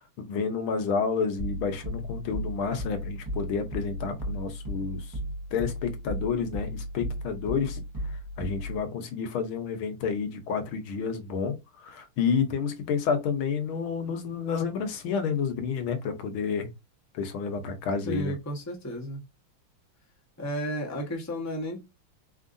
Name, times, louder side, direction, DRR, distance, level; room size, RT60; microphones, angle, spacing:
voice 1, 0.2-5.1 5.5-16.7 17.1-18.3, left 6 dB, 80° left, 1.7 m, -30 dB
sound 1, 1.4-8.9, equal, 10° right, 1.0 m, -35 dB
voice 2, 18.0-19.2 20.4-21.8, equal, 10° left, 0.9 m, -33 dB
4.5 x 3.6 x 2.6 m
omnidirectional pair, 2.3 m